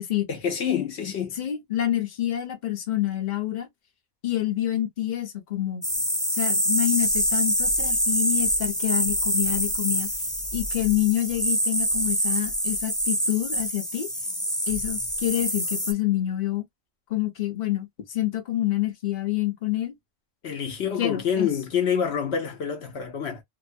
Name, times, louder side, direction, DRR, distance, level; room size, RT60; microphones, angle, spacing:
voice 1, 0.3-1.3 20.4-23.4, left 7 dB, 70° left, 1.0 m, -27 dB
voice 2, 1.4-3.7 4.2-5.8 6.3-10.1 10.5-14.1 14.7-16.6 17.1-19.9 21.0-21.5, left 14 dB, 45° left, 0.9 m, -27 dB
sound 1, 5.8-15.9, equal, 5° left, 0.6 m, -26 dB
2.9 x 2.1 x 2.5 m
omnidirectional pair, 1.2 m